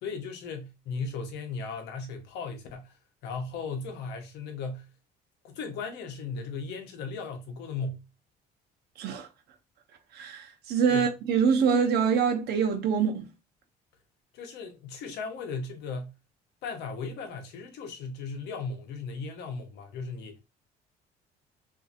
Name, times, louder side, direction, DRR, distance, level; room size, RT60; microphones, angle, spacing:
voice 1, 0.0-3.0 3.2-4.9 5.4-8.1 10.9-11.1 14.3-16.1 16.6-20.4, left 4 dB, 85° left, 0.8 m, -36 dB
voice 2, 9.0-9.3 10.1-13.3, right 6 dB, 75° right, 0.7 m, -25 dB
2.6 x 2.6 x 2.4 m
cardioid pair, 110°, 17 cm